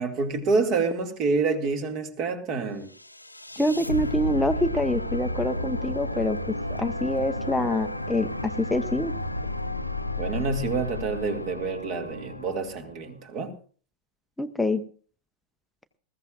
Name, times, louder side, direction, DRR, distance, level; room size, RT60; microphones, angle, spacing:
voice 1, 0.0-2.9 10.2-13.5, right 4 dB, 35° right, 2.2 m, -27 dB
sound 1, 2.9-13.1, left 1 dB, 85° left, 0.8 m, -32 dB
voice 2, 3.6-9.1 14.4-14.8, left 1 dB, 5° left, 0.7 m, -26 dB
20.5 x 15.0 x 2.5 m
figure-of-eight pair, 90°, 0 cm